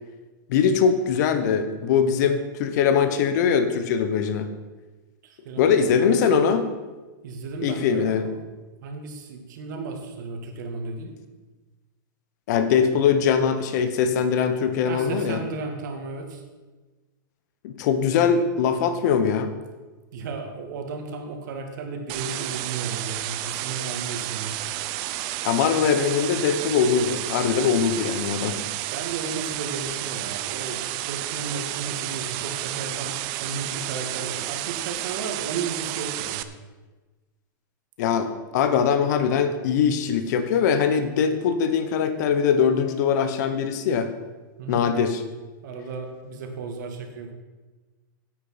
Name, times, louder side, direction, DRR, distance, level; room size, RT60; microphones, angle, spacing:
voice 1, 0.5-4.5 5.6-6.7 7.6-8.2 12.5-15.4 17.6-19.5 25.4-28.6 38.0-44.1 44.7-45.2, left 7 dB, 55° left, 10 dB, 1.2 m, -22 dB
voice 2, 5.2-6.2 7.2-8.4 8.8-11.1 14.9-16.4 20.1-24.5 28.9-36.4 44.6-44.8 45.6-47.3, right 4 dB, 65° right, 4 dB, 2.1 m, -34 dB
sound 1, 22.1-36.4, right 15 dB, 40° right, 0.6 m, -31 dB
9.7 x 8.8 x 6.0 m, 1.3 s
supercardioid pair, 150°, 11 cm